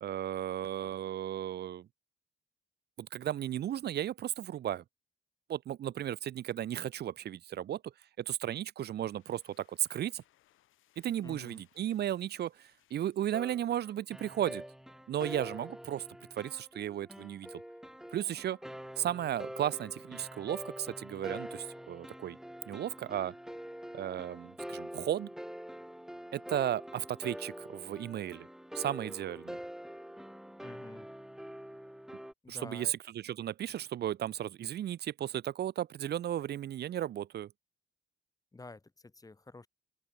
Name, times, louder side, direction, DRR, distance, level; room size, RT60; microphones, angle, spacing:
voice 1, 0.0-1.9 3.0-4.8 5.5-7.9 8.2-10.2 11.0-14.6 15.1-16.0 16.4-17.6 18.1-18.6 19.0-22.4 22.7-23.3 23.9-25.3 26.3-28.5 28.7-29.6 32.5-37.5, right 11 dB, 55° right, 0.6 m, -35 dB
sound 1, 8.8-14.5, left 14 dB, 85° left, 6.6 m, -71 dB
voice 2, 11.2-11.6 30.6-31.1 32.4-32.9 38.5-39.7, left 3 dB, 20° left, 2.3 m, -49 dB
sound 2, 13.3-32.3, equal, ahead, 2.8 m, -45 dB
open air
cardioid pair, 90°, 20 cm